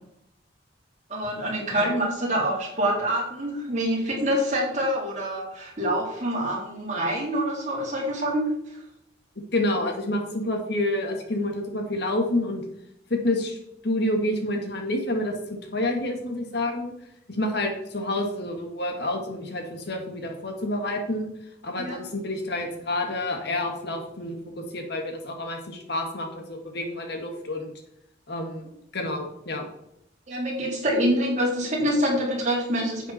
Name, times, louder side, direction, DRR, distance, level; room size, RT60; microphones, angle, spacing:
voice 1, 1.1-8.5 21.8-22.0 30.3-33.1, equal, 35° right, -3 dB, 3.7 m, -26 dB
voice 2, 9.4-12.6 13.1-13.6 13.8-16.9 17.3-21.3 21.6-27.7 28.3-28.7 28.9-29.7, left 1 dB, 55° left, 3 dB, 1.7 m, -28 dB
10.0 x 8.2 x 4.2 m, 0.78 s
head